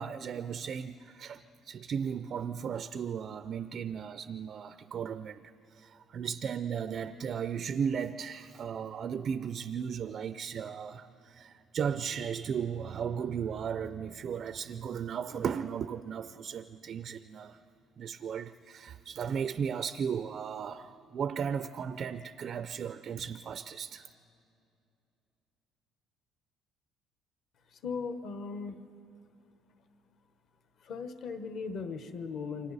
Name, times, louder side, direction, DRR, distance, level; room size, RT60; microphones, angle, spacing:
voice 1, 0.0-1.4 1.6-17.6 18.0-24.1, right 7 dB, 35° right, 12 dB, 0.4 m, -36 dB
voice 2, 27.7-28.9 30.8-32.7, left 5 dB, 45° left, 9 dB, 1.1 m, -38 dB
29.0 x 25.0 x 4.1 m, 2.6 s
cardioid pair, 175°, 0 cm